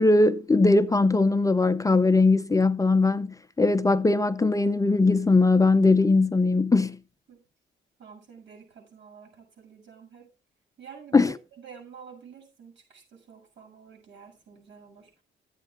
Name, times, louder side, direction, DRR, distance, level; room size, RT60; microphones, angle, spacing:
voice 1, 0.0-7.0 11.1-11.3, left 3 dB, 15° left, 0.6 m, -20 dB
voice 2, 8.0-10.3 10.8-15.2, right 6 dB, 65° right, 7.0 m, -49 dB
12.0 x 9.1 x 3.8 m
cardioid pair, 90°, 20 cm